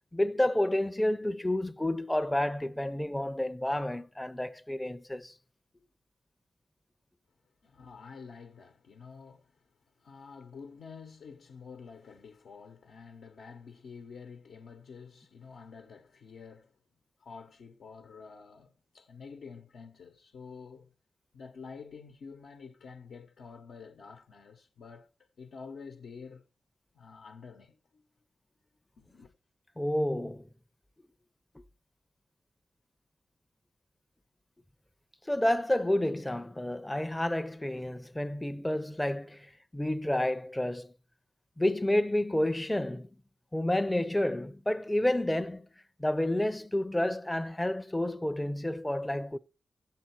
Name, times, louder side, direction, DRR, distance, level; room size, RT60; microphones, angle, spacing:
voice 1, 0.1-5.3 29.8-30.4 31.6-31.7 35.3-40.9 41.6-43.1 43.5-45.7 46.0-49.4, left 1 dB, 10° left, 0.5 m, -30 dB
voice 2, 7.6-16.7 17.2-20.9 21.3-25.1 25.4-26.4 26.9-28.0 29.0-29.3, left 5 dB, 85° left, 0.9 m, -49 dB
15.0 x 7.5 x 4.5 m
cardioid pair, 65°, 0 cm